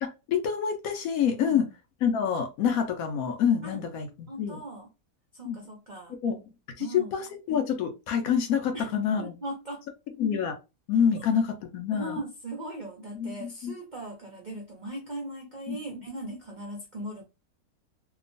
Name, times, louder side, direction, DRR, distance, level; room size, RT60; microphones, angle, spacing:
voice 1, 0.0-1.6 2.0-4.6 5.4-5.6 6.2-6.4 6.8-6.9 7.1-9.3 10.2-10.5 10.9-12.2 13.2-13.7 15.7-15.8, left 7 dB, 75° left, 1.0 m, -27 dB
voice 2, 4.3-4.9 5.3-6.2 6.8-7.1 8.7-8.9 9.2-9.8 11.1-11.2 11.9-17.2, right 1 dB, 65° right, 0.4 m, -38 dB
2.9 x 2.2 x 2.5 m
omnidirectional pair, 1.6 m